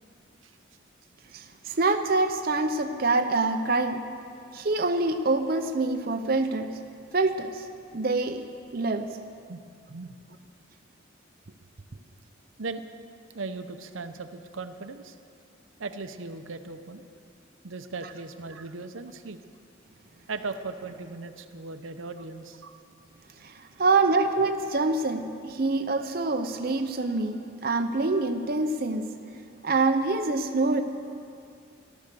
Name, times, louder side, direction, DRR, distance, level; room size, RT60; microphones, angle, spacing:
voice 1, 1.3-4.0 4.5-6.8 7.1-7.7 7.9-9.1 23.4-29.1 29.6-30.8, right 3 dB, 50° right, 5 dB, 0.6 m, -26 dB
voice 2, 13.3-15.2 15.8-17.1 17.6-19.4 20.3-22.8 23.7-23.8, right 3 dB, 80° right, 8 dB, 0.8 m, -38 dB
14.5 x 12.5 x 6.8 m, 2.4 s
head